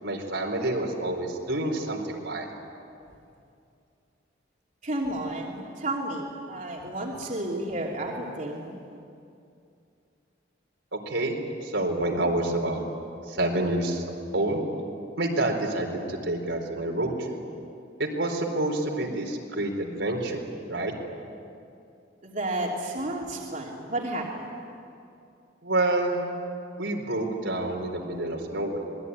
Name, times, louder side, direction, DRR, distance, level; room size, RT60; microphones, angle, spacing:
voice 1, 0.0-2.5 10.9-11.4 11.6-12.8 13.3-14.0 14.3-14.7 15.2-17.4 18.0-20.9 25.6-26.2 26.8-28.8, right 1 dB, 80° right, 1 dB, 4.3 m, -28 dB
voice 2, 4.8-8.7 22.2-24.5, right 1 dB, 45° right, -2 dB, 3.1 m, -32 dB
27.0 x 20.5 x 9.8 m, 2.5 s
head